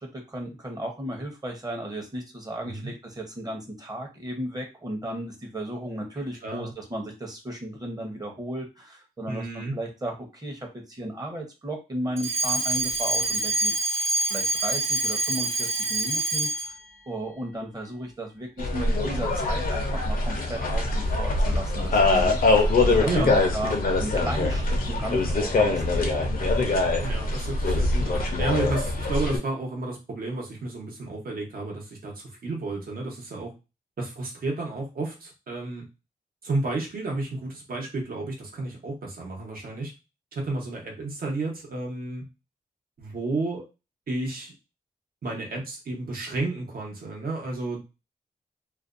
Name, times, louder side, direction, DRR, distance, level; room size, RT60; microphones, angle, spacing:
voice 1, 0.0-16.7 17.1-26.3, right 1 dB, 25° right, 2 dB, 0.8 m, -35 dB
voice 2, 6.4-6.7 9.3-9.7 23.0-23.4 27.0-33.5 34.0-35.8 36.4-39.9 40.3-42.2 43.0-43.6 44.1-44.5 45.2-47.8, right 2 dB, 70° right, -1 dB, 1.0 m, -31 dB
Alarm, 12.2-16.8, right 2 dB, 40° right, 1.2 m, -26 dB
sound 1, 18.6-29.4, left 2 dB, 65° left, 0.6 m, -23 dB
2.5 x 2.2 x 2.5 m, 0.27 s
wide cardioid pair, 105°, 16 cm